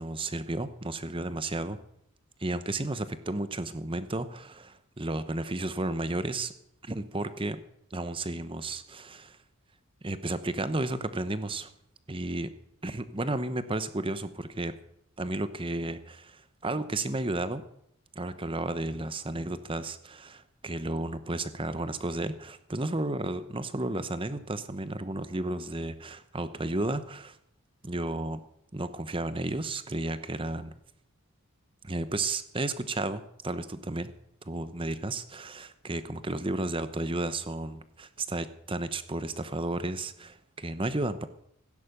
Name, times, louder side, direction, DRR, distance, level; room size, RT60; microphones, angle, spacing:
voice 1, 0.0-1.8 2.4-6.5 6.8-7.6 7.9-9.4 10.0-11.7 12.1-12.5 12.8-14.8 15.2-17.6 18.1-27.4 27.8-28.4 28.7-30.7 31.8-34.1 34.4-41.3, right 2 dB, 25° right, 12 dB, 0.9 m, -33 dB
16.0 x 11.0 x 6.8 m, 0.73 s
head